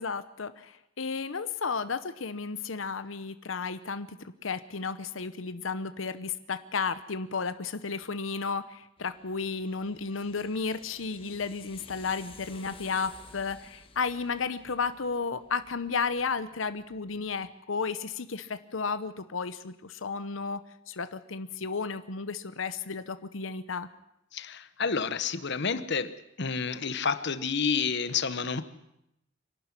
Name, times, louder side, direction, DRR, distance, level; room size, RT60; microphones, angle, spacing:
voice 1, 0.0-20.6 20.9-23.9, left 5 dB, 85° left, 12 dB, 0.9 m, -33 dB
sound 1, 9.0-17.5, left 3 dB, 30° left, 2.0 m, -54 dB
voice 2, 24.3-28.6, left 5 dB, 65° left, 12 dB, 1.2 m, -30 dB
26.0 x 12.0 x 9.7 m, 0.83 s
head